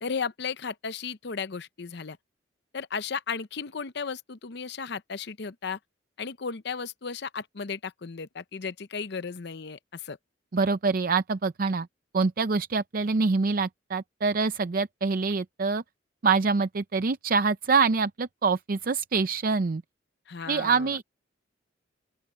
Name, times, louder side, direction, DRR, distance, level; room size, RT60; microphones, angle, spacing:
voice 1, 0.0-2.2 2.7-5.8 6.2-10.2 20.3-21.0, left 5 dB, 60° left, 0.7 m, -35 dB
voice 2, 10.5-11.9 12.1-15.8 16.2-19.8 20.5-21.0, right 4 dB, 50° right, 0.5 m, -25 dB
open air
head